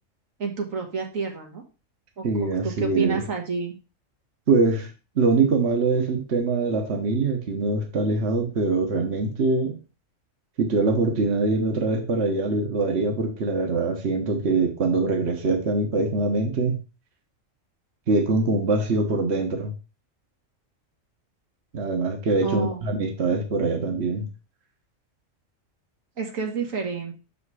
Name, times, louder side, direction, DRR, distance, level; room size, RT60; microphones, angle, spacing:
voice 1, 0.4-1.6 2.2-3.7 22.4-22.9 26.2-27.1, right 5 dB, 85° right, 2 dB, 1.9 m, -29 dB
voice 2, 2.2-3.2 4.5-9.8 10.6-16.8 18.1-19.7 21.7-24.3, right 3 dB, 55° right, 4 dB, 1.4 m, -23 dB
6.5 x 4.9 x 4.8 m, 0.32 s
omnidirectional pair, 1.3 m